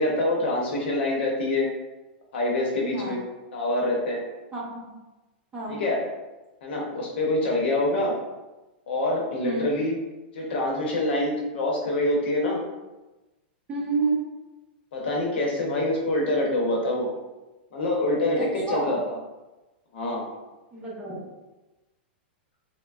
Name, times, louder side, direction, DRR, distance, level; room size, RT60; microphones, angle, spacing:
voice 1, 0.0-1.7 2.3-3.2 3.5-4.2 5.7-6.1 6.6-8.2 8.9-9.9 10.3-12.6 14.9-17.1 17.7-19.2 19.9-20.3, left 1 dB, 70° left, -1 dB, 0.8 m, -25 dB
voice 2, 4.5-5.0 5.5-5.8 9.4-9.7 13.7-14.2 18.3-18.9 20.7-21.2, right 3 dB, 20° right, -4 dB, 0.7 m, -29 dB
3.1 x 2.0 x 2.4 m, 1.1 s
hypercardioid pair, 140°, 6 cm